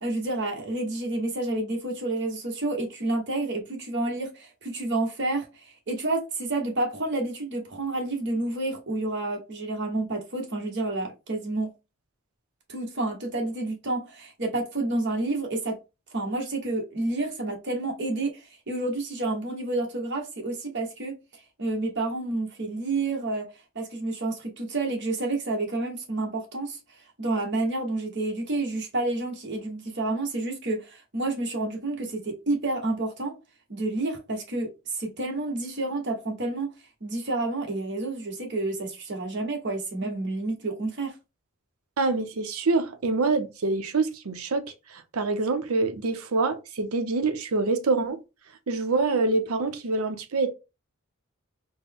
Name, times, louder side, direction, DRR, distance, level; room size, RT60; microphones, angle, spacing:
voice 1, 0.0-11.7 12.7-15.8 16.1-21.1 21.6-23.5 23.7-26.8 27.2-33.4 33.7-36.7 37.0-41.1, right 2 dB, 55° right, 1.2 m, -29 dB
voice 2, 42.0-44.6 44.9-48.2 48.7-50.5, right 3 dB, 85° right, 0.7 m, -26 dB
4.2 x 2.1 x 3.5 m
head